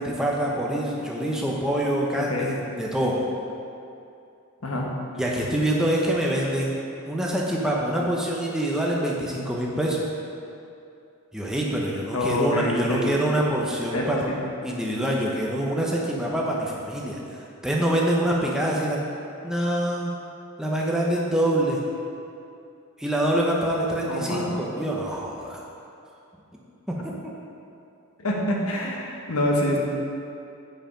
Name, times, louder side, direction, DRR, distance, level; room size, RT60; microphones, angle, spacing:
voice 1, 0.0-3.2 5.1-6.8 7.1-10.0 11.3-14.3 14.6-17.2 17.6-19.1 19.4-20.1 20.6-21.8 23.0-25.6 26.9-27.1, right 1 dB, 5° right, -3 dB, 0.8 m, -25 dB
voice 2, 2.1-2.5 4.6-4.9 12.1-13.1 13.9-14.4 24.1-24.5 28.2-29.8, left 1 dB, 80° left, -1 dB, 1.2 m, -26 dB
7.7 x 4.9 x 5.1 m, 2.6 s
head